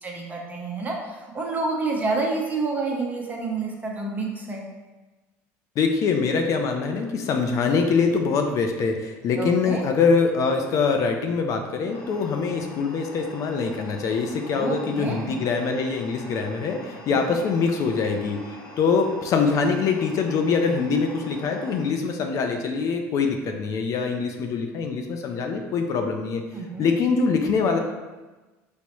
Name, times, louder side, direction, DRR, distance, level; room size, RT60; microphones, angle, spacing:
voice 1, 0.0-4.6 9.4-9.8 14.6-15.4 17.1-17.2 26.5-26.9, right 3 dB, 25° right, -1 dB, 0.7 m, -29 dB
voice 2, 5.8-26.4 26.8-27.8, left 5 dB, 50° left, 4 dB, 0.4 m, -24 dB
sound 1, 11.9-21.8, left 1 dB, 80° left, 0.8 m, -44 dB
4.7 x 2.0 x 2.9 m, 1.2 s
supercardioid pair, 100°, 7 cm